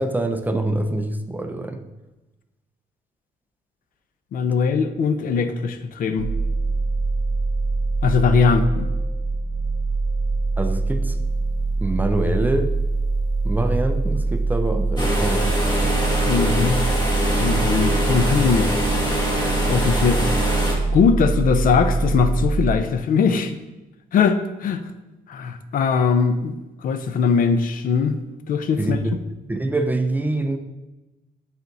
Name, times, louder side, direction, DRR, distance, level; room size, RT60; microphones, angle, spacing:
voice 1, 0.0-1.8 10.6-11.2 11.8-12.8 13.4-15.7 28.8-29.2 29.5-30.6, right 2 dB, 10° right, 7 dB, 0.4 m, -24 dB
voice 2, 4.3-6.3 8.0-8.9 16.3-16.8 17.4-18.7 19.7-20.5 20.9-23.5 24.1-24.8 25.3-28.2 28.5-29.0, left 5 dB, 65° left, 10 dB, 0.5 m, -20 dB
sound 1, 6.2-22.8, right 3 dB, 35° right, 0.9 m, -23 dB
sound 2, 15.0-20.7, equal, 25° left, 1.4 m, -24 dB
7.2 x 3.5 x 3.9 m, 1.0 s
cardioid pair, 110°, 16 cm